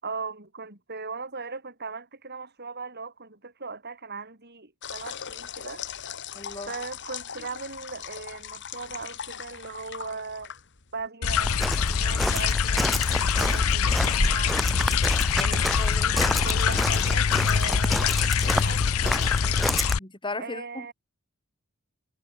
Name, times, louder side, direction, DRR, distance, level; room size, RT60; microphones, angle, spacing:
voice 1, 0.0-5.8 6.7-10.5 10.9-14.6 15.3-18.1 18.4-19.8 20.4-20.9, right 4 dB, 50° right, 7.5 m, -39 dB
sound 1, 4.8-11.1, left 8 dB, 55° left, 1.8 m, -39 dB
voice 2, 6.3-6.7 15.4-15.5 15.8-16.1 20.0-20.9, left 2 dB, 20° left, 5.7 m, -36 dB
sound 2, 11.2-20.0, left 6 dB, 75° left, 0.6 m, -24 dB
Walk footsteps, 11.4-19.9, equal, ahead, 0.7 m, -29 dB
head